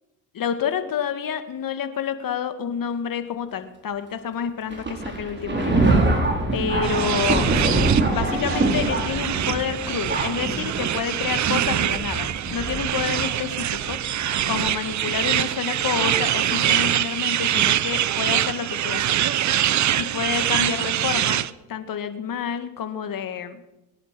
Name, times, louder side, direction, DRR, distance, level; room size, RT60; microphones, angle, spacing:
voice 1, 0.3-5.9 6.5-19.1 19.9-21.4 21.7-23.6, left 7 dB, 50° left, 9 dB, 2.2 m, -29 dB
Thunder, 4.7-14.6 15.4-15.5 16.5-16.7 17.4-17.6, right 2 dB, 25° right, 4.4 m, -25 dB
sound 1, 6.8-21.5, right 11 dB, 45° right, 0.7 m, -24 dB
22.0 x 10.0 x 6.3 m, 0.99 s
supercardioid pair, 70°, 42 cm